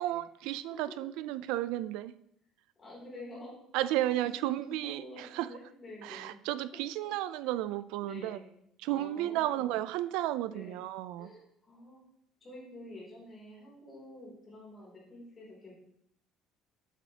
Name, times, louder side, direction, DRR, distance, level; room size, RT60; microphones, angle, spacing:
voice 1, 0.0-2.1 3.7-5.5 6.0-8.4 8.8-11.3, right 14 dB, 85° right, 15 dB, 0.3 m, -33 dB
voice 2, 2.8-3.6 4.0-6.4 8.0-8.5 8.9-9.8 10.5-10.8 11.2-12.0 12.4-15.7, left 1 dB, 20° left, -5 dB, 3.0 m, -49 dB
8.2 x 7.1 x 2.9 m, 0.73 s
cardioid pair, 175°, 0 cm